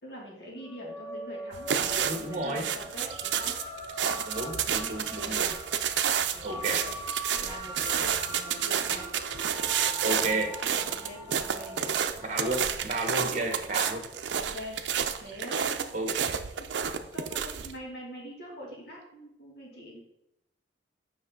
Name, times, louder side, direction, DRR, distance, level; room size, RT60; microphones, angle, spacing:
voice 1, 0.0-3.6 4.9-5.4 6.1-6.9 7.3-9.1 10.1-12.0 14.4-14.8 15.2-15.9 16.6-16.8 17.1-20.0, equal, 65° left, -3 dB, 2.4 m, -44 dB
sound 1, 0.6-15.3, equal, 15° left, 1.8 m, -42 dB
sound 2, 1.5-17.7, right 8 dB, 90° right, 0.5 m, -30 dB
voice 2, 1.9-2.6 4.2-5.5 6.4-6.8 10.0-10.5 12.2-14.1 15.9-16.4, right 2 dB, 40° right, 4 dB, 1.1 m, -32 dB
7.4 x 5.3 x 3.7 m, 0.84 s
head